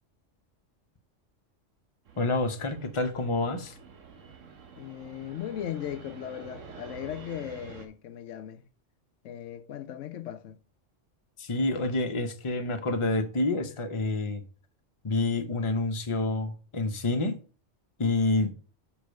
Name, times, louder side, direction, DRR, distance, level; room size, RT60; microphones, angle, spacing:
Fixed-wing aircraft airplane, 2.1-7.9, right 6 dB, 85° right, 1.4 m, -48 dB
voice 1, 2.2-3.7 11.4-14.4 15.0-17.4 18.0-18.5, left 2 dB, 30° left, 0.8 m, -28 dB
voice 2, 4.8-8.6 9.2-10.6, left 10 dB, 80° left, 1.0 m, -37 dB
5.4 x 5.1 x 6.3 m
omnidirectional pair, 1.3 m